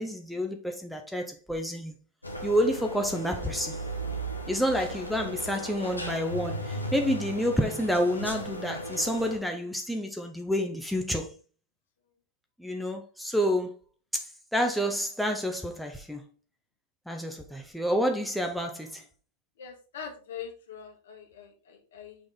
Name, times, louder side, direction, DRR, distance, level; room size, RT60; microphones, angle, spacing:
voice 1, 0.0-1.9 2.4-3.8 4.5-11.3 12.6-13.7 14.1-14.3 14.5-16.2 17.1-19.0, equal, ahead, 0.9 m, -29 dB
sound 1, 2.2-9.4, equal, 85° left, 1.2 m, -36 dB
voice 2, 19.6-22.2, left 7 dB, 60° left, 1.7 m, -43 dB
6.1 x 5.0 x 3.7 m
figure-of-eight pair, 90°, 0 cm